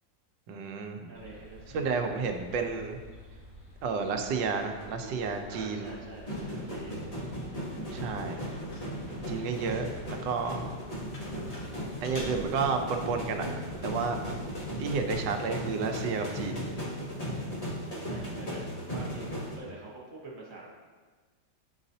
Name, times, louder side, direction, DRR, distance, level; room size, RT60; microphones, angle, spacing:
voice 1, 0.5-1.1 1.7-3.0 3.8-5.9 7.9-8.5 9.3-10.8 12.0-13.5 13.8-14.2 14.8-16.6, right 5 dB, 85° right, 5 dB, 1.3 m, -31 dB
sound 1, 1.1-15.2, left 1 dB, 70° left, 2.1 m, -49 dB
voice 2, 1.1-2.3 5.5-7.0 9.5-9.7 18.0-20.7, right 2 dB, 50° right, -4 dB, 1.5 m, -47 dB
sound 2, 4.2-19.6, equal, 30° left, 0.9 m, -37 dB
9.9 x 4.0 x 2.7 m, 1.4 s
omnidirectional pair, 1.9 m